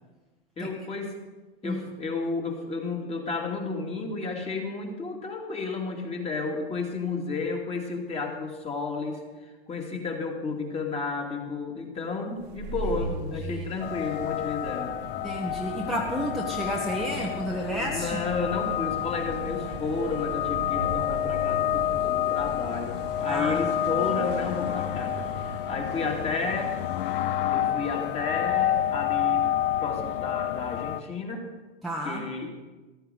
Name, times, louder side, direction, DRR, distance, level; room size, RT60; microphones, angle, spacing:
voice 1, 0.6-1.1 1.6-9.2 9.7-14.9 17.8-26.7 27.5-29.4 29.8-31.5 32.0-32.6, left 4 dB, 20° left, 1 dB, 2.4 m, -32 dB
sound 1, 12.4-29.8, right 2 dB, 35° right, 1.6 m, -40 dB
sound 2, 13.8-31.0, left 12 dB, 60° left, 0.7 m, -29 dB
voice 2, 15.2-18.2 23.3-23.7 31.8-32.2, equal, ahead, -2 dB, 1.3 m, -31 dB
14.0 x 12.5 x 5.1 m, 1.2 s
hypercardioid pair, 110°, 31 cm